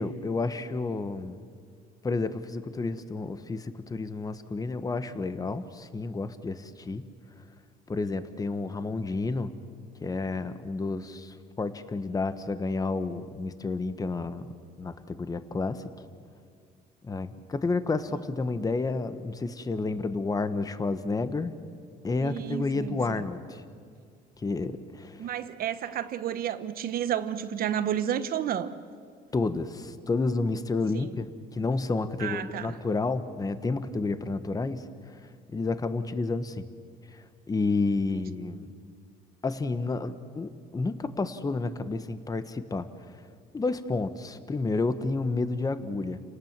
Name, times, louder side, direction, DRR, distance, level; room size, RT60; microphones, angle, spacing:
voice 1, 0.0-1.4 2.0-7.1 7.9-9.5 10.0-14.5 14.8-15.9 17.0-21.5 22.0-23.6 24.4-25.3 29.3-35.2 35.5-36.7 37.1-38.7 39.4-43.2 43.5-46.2, left 3 dB, 20° left, 11 dB, 1.2 m, -30 dB
voice 2, 22.2-23.2 25.2-28.7 30.9-31.1 32.2-32.7 38.1-38.2, right 10 dB, 60° right, 11 dB, 1.1 m, -31 dB
30.0 x 18.5 x 7.5 m, 2.1 s
cardioid pair, 110°, 17 cm